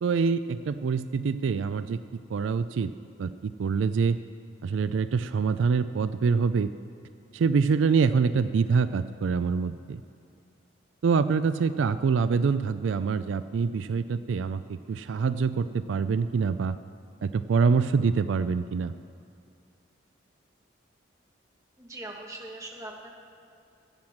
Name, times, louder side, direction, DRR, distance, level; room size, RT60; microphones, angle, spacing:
voice 1, 0.0-2.0 2.3-2.9 3.2-4.2 4.6-6.7 7.3-10.0 11.0-16.8 17.2-18.9, right 5 dB, 80° right, 13 dB, 0.4 m, -25 dB
voice 2, 21.8-23.1, right 1 dB, 15° right, -1 dB, 1.3 m, -41 dB
13.0 x 7.9 x 7.3 m, 2.6 s
head